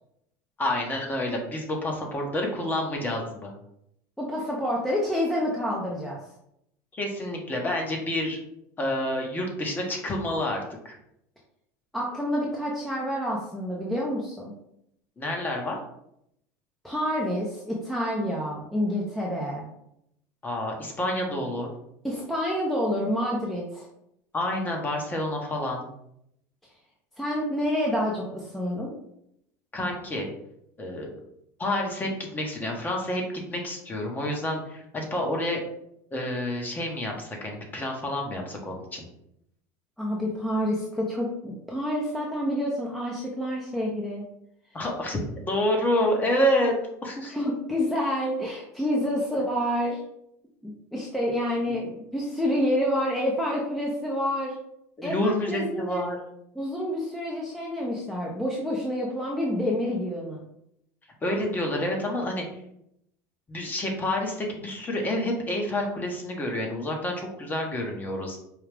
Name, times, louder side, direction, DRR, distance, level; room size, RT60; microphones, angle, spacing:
voice 1, 0.6-3.5 6.9-8.4 8.8-11.0 15.2-15.8 20.4-21.7 24.3-25.9 29.7-30.3 30.8-31.1 31.6-33.2 33.5-35.6 36.1-39.1 44.7-47.3 51.7-51.8 55.0-56.2 61.2-62.4 63.5-68.4, left 1 dB, 20° left, 1 dB, 1.0 m, -28 dB
voice 2, 4.2-6.2 11.9-14.5 16.8-19.7 22.0-23.9 27.2-28.9 40.0-44.2 47.3-50.0 50.6-54.6 55.0-56.0 56.5-60.4, equal, ahead, -3 dB, 0.7 m, -28 dB
4.8 x 2.3 x 3.4 m, 0.77 s
supercardioid pair, 110°, 8 cm